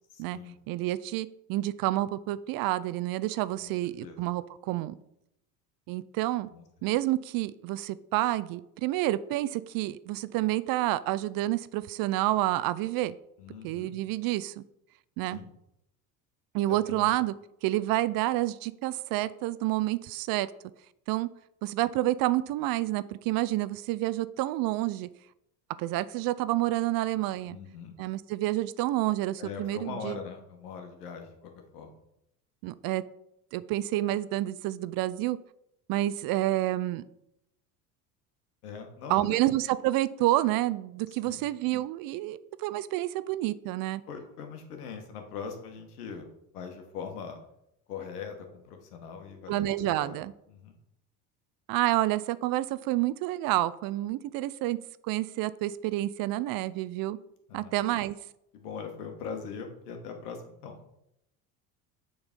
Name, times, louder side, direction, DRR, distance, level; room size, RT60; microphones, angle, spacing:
voice 1, 0.1-0.6 3.6-3.7 4.0-4.2 6.5-6.6 13.4-13.9 15.3-15.5 16.7-17.1 27.4-27.9 29.4-31.9 38.6-39.4 41.1-41.4 44.1-47.4 47.9-50.1 50.5-50.8 57.5-57.7 58.5-60.8, left 6 dB, 90° left, 4 dB, 1.5 m, -41 dB
voice 2, 0.7-4.9 5.9-6.5 6.8-13.1 13.6-14.6 15.2-15.4 16.5-17.3 17.6-20.5 21.1-21.3 21.6-25.1 25.8-27.6 28.0-30.2 32.6-33.0 33.5-35.4 35.9-37.0 39.1-44.0 49.5-50.3 51.7-54.8 55.0-57.2 57.5-58.2, right 16 dB, 50° right, 16 dB, 0.5 m, -29 dB
7.1 x 3.9 x 5.3 m, 0.79 s
supercardioid pair, 90°, 45 cm